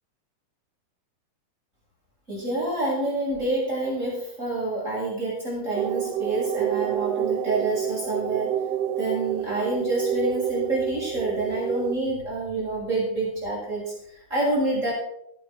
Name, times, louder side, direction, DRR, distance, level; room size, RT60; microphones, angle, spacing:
voice 1, 2.3-8.5 9.0-14.9, right 2 dB, 20° right, -6 dB, 7.5 m, -27 dB
sound 1, 5.7-11.9, right 10 dB, 90° right, 1.4 m, -28 dB
15.5 x 11.0 x 5.1 m, 0.74 s
omnidirectional pair, 4.0 m